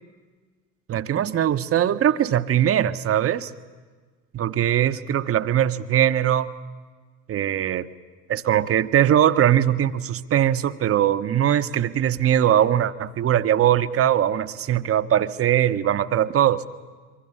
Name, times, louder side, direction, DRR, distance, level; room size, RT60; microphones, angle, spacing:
voice 1, 0.9-3.5 4.3-6.5 7.3-7.9 8.3-16.6, right 10 dB, 30° right, 12 dB, 0.9 m, -21 dB
26.5 x 24.0 x 7.0 m, 1.4 s
figure-of-eight pair, 60°, 48 cm